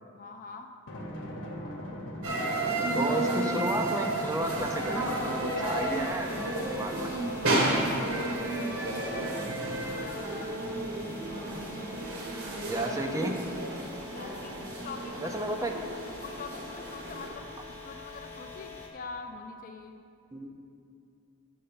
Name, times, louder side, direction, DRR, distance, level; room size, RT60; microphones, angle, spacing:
voice 1, 0.1-0.7 8.8-10.4 14.1-15.4 16.1-20.0, left 4 dB, 40° left, 6 dB, 0.4 m, -44 dB
Drum, 0.9-11.9, equal, 60° left, 1.1 m, -42 dB
sound 1, 2.2-17.3, right 1 dB, 80° right, 1.4 m, -32 dB
voice 2, 2.9-7.1 12.7-13.4 15.2-15.7 20.3-20.5, right 1 dB, 15° right, 2 dB, 0.5 m, -32 dB
sound 2, 4.4-18.9, left 3 dB, 10° left, 1.0 m, -45 dB
6.7 x 5.5 x 6.7 m, 2.5 s
head